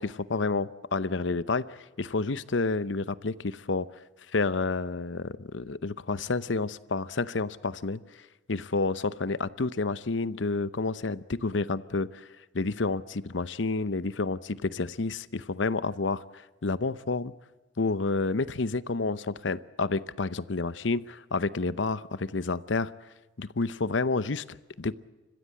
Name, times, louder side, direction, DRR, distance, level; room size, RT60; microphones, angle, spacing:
voice 1, 0.0-3.9 4.3-8.0 8.5-12.3 12.5-17.3 17.8-22.9 23.4-24.9, left 3 dB, 70° left, 16 dB, 0.8 m, -29 dB
29.5 x 15.5 x 7.7 m, 1.2 s
head